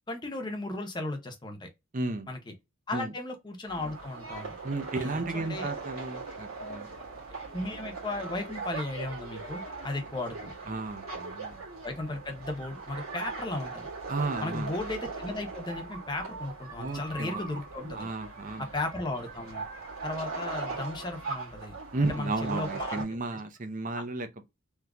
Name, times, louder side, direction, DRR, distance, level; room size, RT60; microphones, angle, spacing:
voice 1, 0.1-1.7 2.3-2.4 2.9-4.6 4.9-5.7 7.5-10.5 11.8-13.9 14.4-18.1 18.6-19.6 20.0-21.8 22.0-23.0 23.3-23.4 23.9-24.0, left 2 dB, 20° left, 0.7 m, -35 dB
voice 2, 1.9-2.3 2.9-3.1 4.6-6.9 10.7-11.6 14.1-14.7 16.8-17.4 17.9-18.7 21.9-24.5, right 3 dB, 35° right, 0.6 m, -33 dB
sound 1, 3.7-23.0, right 4 dB, 85° right, 1.9 m, -40 dB
3.6 x 2.8 x 2.3 m
head